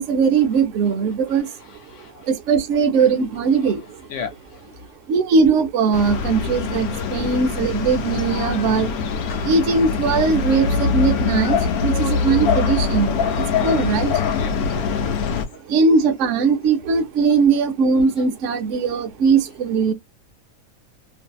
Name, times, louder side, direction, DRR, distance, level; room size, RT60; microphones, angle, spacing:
voice 1, 0.0-4.1 5.1-14.4 15.5-19.9, right 5 dB, 65° right, 0.9 m, -20 dB
voice 2, 1.3-2.3 3.0-3.1 3.6-3.7 4.1-4.8 6.1-6.3 8.1-8.2 14.4-15.6, left 7 dB, 65° left, 0.9 m, -38 dB
sound 1, 5.9-15.5, left 5 dB, 90° left, 1.1 m, -23 dB
2.6 x 2.6 x 2.2 m
omnidirectional pair, 1.5 m